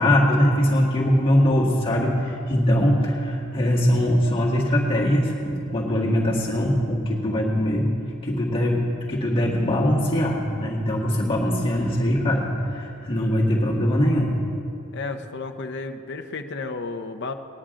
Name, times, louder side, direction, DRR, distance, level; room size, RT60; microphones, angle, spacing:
voice 1, 0.0-7.9 8.2-14.3, equal, 25° left, -5 dB, 1.8 m, -22 dB
voice 2, 14.9-17.3, left 3 dB, 55° left, 6 dB, 0.7 m, -32 dB
19.5 x 10.0 x 3.8 m, 2.7 s
head